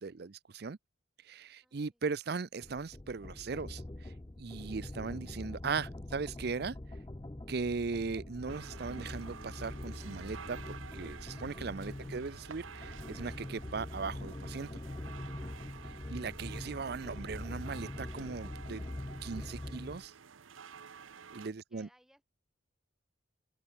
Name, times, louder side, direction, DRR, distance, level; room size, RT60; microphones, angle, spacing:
voice 1, 0.0-0.8 1.2-6.8 7.5-14.8 15.8-18.8 19.2-20.1 21.3-21.9, right 4 dB, 55° right, 0.5 m, -38 dB
voice 2, 1.6-2.0 21.4-22.2, equal, ahead, 7.5 m, -68 dB
sound 1, 2.6-20.1, left 1 dB, 20° left, 0.6 m, -44 dB
sound 2, 8.5-21.5, right 6 dB, 90° right, 0.8 m, -51 dB
head